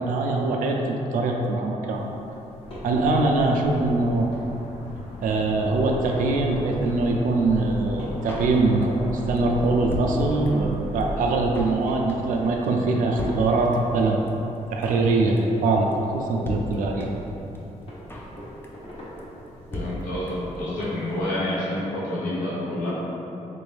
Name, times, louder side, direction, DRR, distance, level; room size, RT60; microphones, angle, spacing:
voice 1, 0.0-2.0 2.8-4.3 5.2-14.2 14.7-15.9 16.1-17.1, right 3 dB, 85° right, 1 dB, 0.4 m, -23 dB
sound 1, 1.9-21.3, equal, 45° left, 0.8 m, -42 dB
sound 2, 2.6-12.9, equal, 70° left, 0.6 m, -36 dB
Drum kit, 8.3-9.1 9.4-9.5 9.6-10.7 11.0-11.1 11.3-11.8 12.1-12.4 12.6-12.7 12.9-13.0 13.2-14.0 14.3-14.4 14.5-15.1 15.4-15.6 15.9-16.0 16.2-16.3 16.4-17.3 17.5-17.6 17.8-18.4 18.6-18.9 19.2-19.3 19.5-19.6 19.7-20.6 20.8-20.9 21.1-21.2, left 1 dB, 15° left, 0.4 m, -36 dB
voice 2, 19.7-22.9, left 1 dB, 90° left, -9 dB, 0.9 m, -28 dB
3.7 x 2.5 x 3.2 m, 2.9 s
wide cardioid pair, 140°, 14 cm